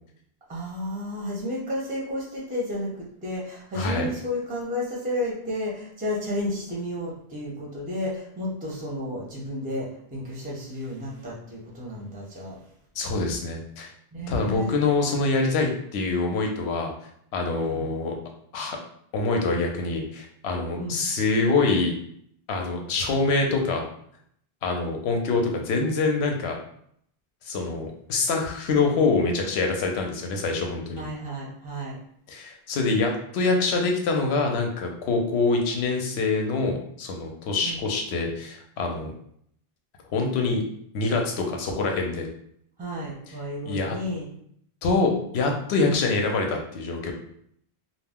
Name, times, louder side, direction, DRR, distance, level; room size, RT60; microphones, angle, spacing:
voice 1, 0.5-12.6 14.1-14.7 17.6-17.8 20.8-21.0 31.0-32.0 37.6-37.8 42.8-44.3, left 1 dB, 10° right, -4 dB, 0.5 m, -32 dB
voice 2, 3.7-4.1 13.0-13.9 14.3-16.9 17.3-18.1 18.5-18.8 19.1-21.9 22.5-23.8 24.6-26.6 27.4-31.0 32.3-39.1 40.1-40.6 40.9-42.3 43.7-44.0 44.8-47.1, left 3 dB, 90° left, 2 dB, 0.8 m, -25 dB
2.4 x 2.0 x 3.5 m, 0.68 s
omnidirectional pair, 1.1 m